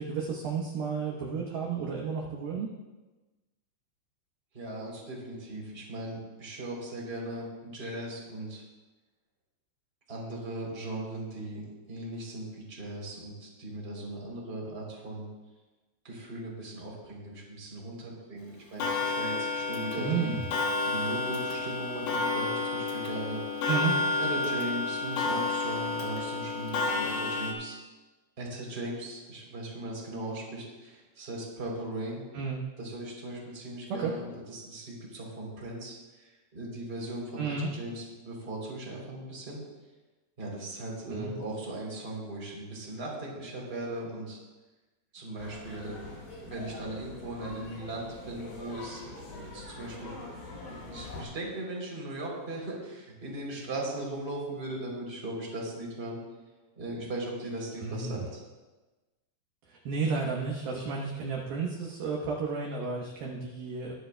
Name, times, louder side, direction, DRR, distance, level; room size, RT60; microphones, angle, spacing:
voice 1, 0.0-2.7 20.0-20.4 23.7-24.0 32.3-32.6 33.9-34.1 37.4-37.7 41.1-41.3 57.8-58.3 59.7-63.9, right 5 dB, 75° right, -2 dB, 2.2 m, -32 dB
voice 2, 4.5-8.6 10.1-15.3 16.0-20.3 20.9-23.4 24.2-27.8 28.4-32.2 32.8-37.4 37.7-39.6 40.4-44.4 45.1-46.0 46.4-50.1 50.7-56.2 56.8-58.2, right 1 dB, 15° right, -3 dB, 2.4 m, -38 dB
Clock, 18.8-27.5, left 3 dB, 85° left, 4.2 m, -30 dB
sound 1, 45.4-51.3, left 2 dB, 65° left, 6.1 m, -44 dB
23.0 x 10.5 x 2.2 m, 1.2 s
omnidirectional pair, 5.7 m